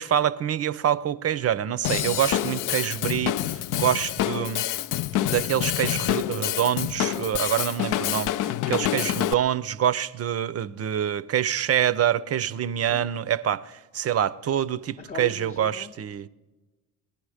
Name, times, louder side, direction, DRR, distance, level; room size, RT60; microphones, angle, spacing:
voice 1, 0.0-4.6 5.2-16.3, right 10 dB, 40° right, 0.6 m, -26 dB
Drum kit / Drum, 1.8-9.3, left 13 dB, 50° left, 0.5 m, -27 dB
voice 2, 15.0-15.9, left 4 dB, 20° left, 0.8 m, -39 dB
19.5 x 11.0 x 4.9 m
hypercardioid pair, 50°, 39 cm